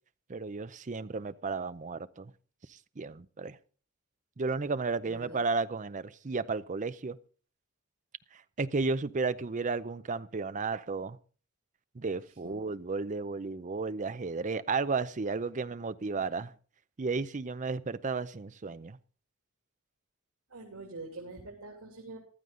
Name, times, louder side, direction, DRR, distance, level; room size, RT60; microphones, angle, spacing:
voice 1, 0.3-2.3 2.7-3.6 4.4-7.2 8.3-11.2 11.9-16.5 17.0-19.0, right 4 dB, 35° right, 0.6 m, -33 dB
voice 2, 5.1-5.4 12.4-12.6 20.5-22.2, right 3 dB, 90° right, 2.8 m, -44 dB
15.0 x 12.5 x 3.8 m
head